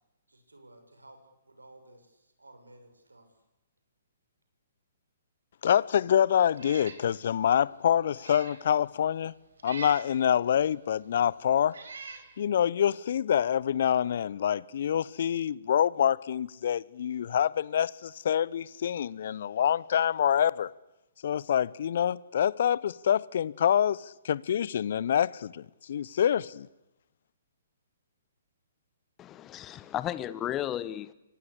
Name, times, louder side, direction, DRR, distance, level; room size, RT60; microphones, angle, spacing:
voice 1, 0.3-1.2 1.5-3.3, right 1 dB, 85° right, 6.8 m, -54 dB
voice 2, 5.6-9.3 9.6-11.8 12.4-20.7 21.2-26.7, left 9 dB, 55° left, 0.9 m, -26 dB
Meow, 6.5-7.0 7.5-7.6 8.1-8.6 9.6-10.1 11.0-11.1 11.7-12.3, right 4 dB, 70° right, 5.0 m, -43 dB
voice 3, 29.2-31.1, left 12 dB, 20° left, 1.2 m, -34 dB
28.5 x 24.0 x 8.4 m
figure-of-eight pair, 125°, 0 cm